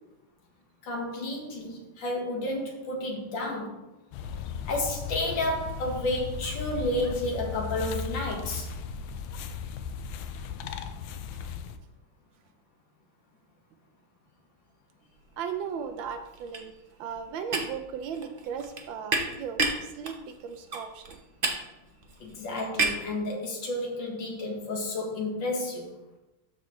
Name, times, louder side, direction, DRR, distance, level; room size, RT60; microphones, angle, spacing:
voice 1, 0.8-3.8 4.7-8.7 22.2-25.9, left 1 dB, 65° left, 0 dB, 2.1 m, -31 dB
sound 1, 4.1-11.8, left 6 dB, 85° left, 1.5 m, -36 dB
sound 2, 15.3-15.7 15.9-23.1, right 3 dB, 55° right, 0.5 m, -32 dB
voice 2, 15.4-16.7 17.0-21.2, right 7 dB, 75° right, 7 dB, 1.3 m, -36 dB
12.5 x 4.3 x 3.1 m, 0.99 s
omnidirectional pair, 2.3 m